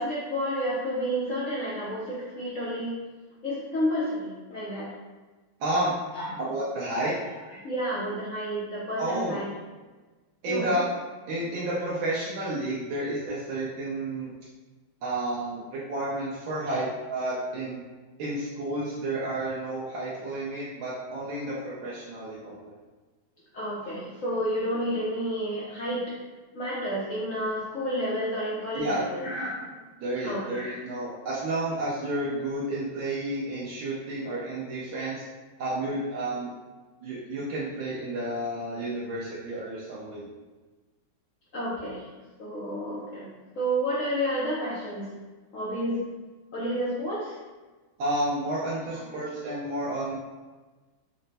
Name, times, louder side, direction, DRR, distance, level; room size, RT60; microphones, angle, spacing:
voice 1, 0.0-2.9 3.4-4.9 6.1-6.4 7.5-9.5 10.5-10.8 16.7-16.8 23.5-26.2 26.5-29.6 30.2-30.8 41.5-42.1 42.4-43.3 43.6-45.1 45.5-46.0 46.5-47.4 48.9-49.2, equal, 80° left, -7 dB, 0.7 m, -30 dB
voice 2, 5.6-5.9 6.5-7.1 9.0-9.4 10.4-10.8 11.3-14.3 15.0-17.8 18.2-22.7 28.7-29.0 30.0-35.2 35.6-36.5 37.0-40.3 48.0-50.2, right 1 dB, 70° right, -8 dB, 1.4 m, -31 dB
4.3 x 2.1 x 4.0 m, 1.3 s
omnidirectional pair, 2.3 m